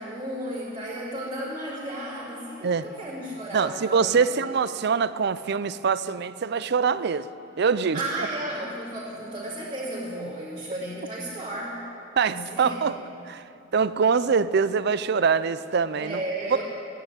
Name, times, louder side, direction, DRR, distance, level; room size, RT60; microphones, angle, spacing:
voice 1, 0.0-4.5 7.9-11.9 12.3-12.9 16.0-16.6, right 1 dB, 25° right, -10 dB, 2.8 m, -34 dB
voice 2, 3.5-7.3 7.6-8.0 12.2-13.0 13.3-13.4 13.7-16.2, right 5 dB, 55° right, 15 dB, 0.5 m, -24 dB
16.0 x 10.0 x 9.1 m, 2.8 s
head